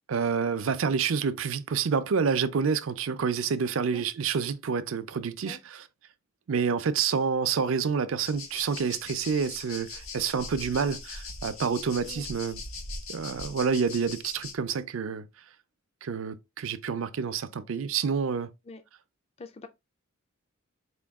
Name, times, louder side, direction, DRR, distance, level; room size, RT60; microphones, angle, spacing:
voice 1, 0.1-5.8 6.5-12.6 13.1-15.3 16.0-18.5, right 6 dB, 75° right, 0.5 m, -28 dB
voice 2, 3.9-4.0 5.4-5.6 12.1-12.3 18.7-18.8 19.4-19.7, left 3 dB, 30° left, 0.4 m, -44 dB
sound 1, 8.2-14.6, left 3 dB, 85° left, 1.0 m, -41 dB
4.4 x 2.3 x 3.4 m
head